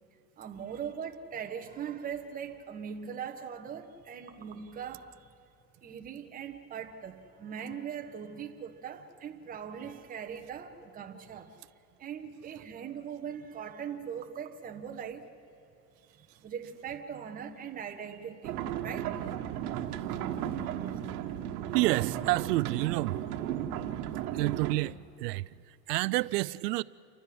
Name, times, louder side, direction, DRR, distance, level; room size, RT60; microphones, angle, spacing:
voice 1, 0.4-5.3 5.8-15.3 16.1-19.4 20.6-21.0, right 7 dB, 15° right, 1.3 m, -41 dB
sound 1, 18.4-24.7, right 10 dB, 65° right, 1.5 m, -35 dB
voice 2, 21.7-23.2 24.3-26.8, right 20 dB, 80° right, 0.6 m, -29 dB
29.0 x 13.5 x 7.8 m
supercardioid pair, 155°, 47 cm